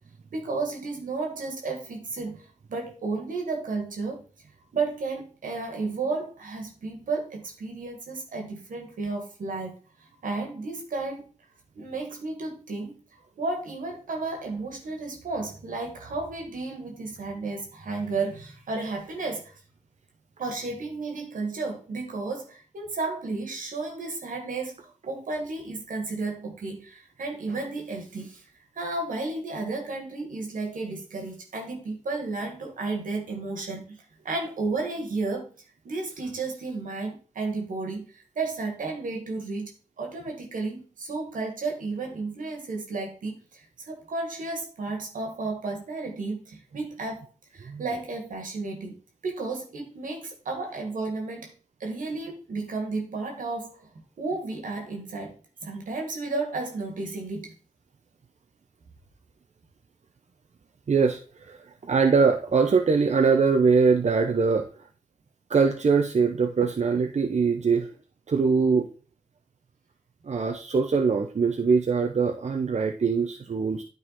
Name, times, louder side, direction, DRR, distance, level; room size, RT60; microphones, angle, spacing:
voice 1, 0.3-4.2 4.7-9.7 10.2-11.3 11.8-12.9 13.4-19.5 20.4-28.4 28.8-34.0 34.2-35.5 35.8-39.7 40.0-47.3 47.5-51.5 51.8-53.8 54.2-55.4 55.6-57.5, right 3 dB, 85° right, 2 dB, 2.0 m, -33 dB
voice 2, 60.9-64.7 65.5-67.9 68.3-68.9 70.2-73.8, right 5 dB, 60° right, 4 dB, 0.8 m, -22 dB
9.6 x 4.1 x 4.2 m, 0.37 s
cardioid pair, 45°, 13 cm